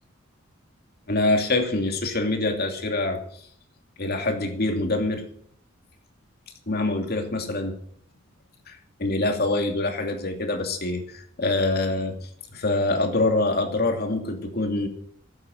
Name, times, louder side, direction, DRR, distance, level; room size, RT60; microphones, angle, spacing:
voice 1, 1.1-3.2 4.0-5.2 6.7-7.7 8.7-14.9, left 2 dB, 50° left, 4 dB, 2.6 m, -25 dB
16.0 x 8.9 x 7.9 m, 0.63 s
head